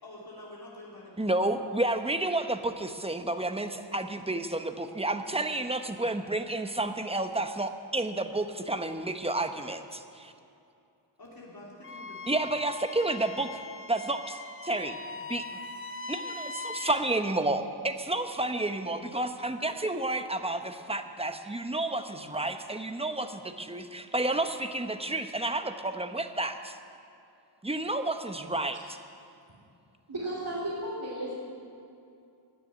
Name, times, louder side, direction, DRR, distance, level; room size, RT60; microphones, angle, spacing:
voice 1, 0.0-1.5 11.2-12.5, left 1 dB, 55° left, -5 dB, 3.1 m, -48 dB
voice 2, 1.2-10.3 12.3-13.5 13.9-15.0 15.3-15.5 16.1-26.8 27.6-29.0, right 2 dB, 15° right, 7 dB, 0.8 m, -31 dB
Wind instrument woodwind instrument, 11.8-17.1, left 3 dB, 30° left, 0.7 m, -41 dB
voice 3, 30.1-31.3, right 1 dB, 60° right, -8 dB, 3.3 m, -34 dB
16.5 x 6.9 x 10.0 m, 2.6 s
wide cardioid pair, 85°, 45 cm